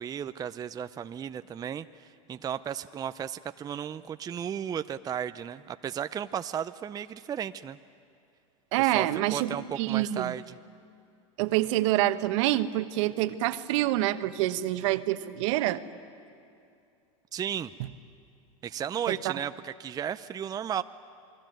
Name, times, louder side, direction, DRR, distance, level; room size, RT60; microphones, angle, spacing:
voice 1, 0.0-7.8 8.8-10.6 17.3-17.7 18.6-20.8, right 9 dB, 20° right, 10 dB, 0.6 m, -34 dB
voice 2, 8.7-10.3 11.4-15.8 19.1-19.3, right 15 dB, 65° right, 11 dB, 1.2 m, -27 dB
28.5 x 22.0 x 9.2 m, 2.5 s
hypercardioid pair, 110°, 17 cm